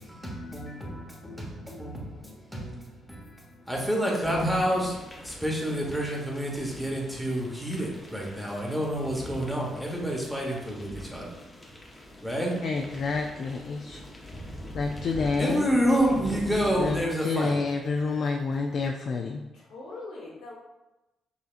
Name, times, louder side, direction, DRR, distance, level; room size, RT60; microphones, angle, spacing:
voice 1, 0.0-11.3 12.2-12.5 15.4-17.6, equal, ahead, -3 dB, 1.0 m, -29 dB
sound 1, 4.2-17.1, left 1 dB, 20° left, 0.7 m, -42 dB
voice 2, 12.6-14.0 14.7-15.7 16.8-19.4, left 4 dB, 55° left, 2 dB, 0.3 m, -28 dB
voice 3, 19.5-20.5, left 2 dB, 80° left, -4 dB, 1.4 m, -41 dB
5.5 x 2.7 x 2.5 m, 1.0 s
cardioid pair, 90°, 0 cm